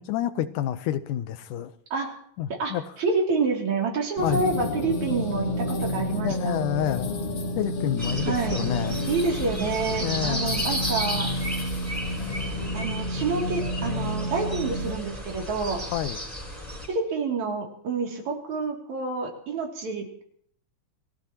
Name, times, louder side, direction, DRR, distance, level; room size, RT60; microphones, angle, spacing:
voice 1, 0.0-1.7 2.4-2.8 4.2-4.4 6.2-7.1 7.6-9.0 10.0-10.5 15.9-16.2, left 11 dB, 90° left, 11 dB, 2.4 m, -28 dB
voice 2, 2.6-6.6 8.3-8.6 9.1-11.3 12.7-15.8 16.9-20.1, right 4 dB, 65° right, 0 dB, 4.2 m, -28 dB
sound 1, 4.2-14.9, left 1 dB, 55° left, 2.8 m, -30 dB
sound 2, 8.0-16.9, equal, 10° right, 4.2 m, -33 dB
28.5 x 17.0 x 3.0 m, 0.64 s
omnidirectional pair, 3.6 m